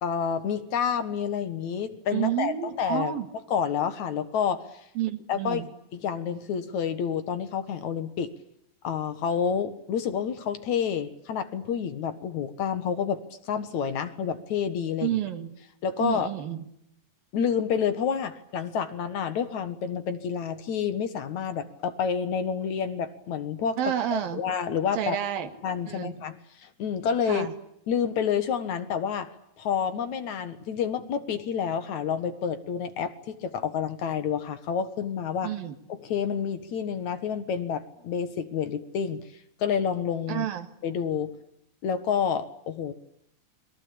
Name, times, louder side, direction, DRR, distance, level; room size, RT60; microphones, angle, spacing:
voice 1, 0.0-2.5 2.8-3.2 3.5-4.6 5.3-5.7 5.9-8.3 8.8-15.1 15.8-16.3 17.3-23.8 24.1-25.2 25.6-27.5 27.9-35.5 36.0-39.2 39.6-40.5 40.8-41.3 41.8-42.9, left 7 dB, 60° left, 10 dB, 2.6 m, -29 dB
voice 2, 2.1-3.3 5.0-5.7 15.0-15.6 16.0-16.6 23.8-24.4 24.9-25.5 25.9-26.2 27.3-27.5 35.4-35.8 40.3-40.7, right 11 dB, 85° right, 8 dB, 3.6 m, -30 dB
29.0 x 23.0 x 8.7 m, 0.77 s
omnidirectional pair, 4.0 m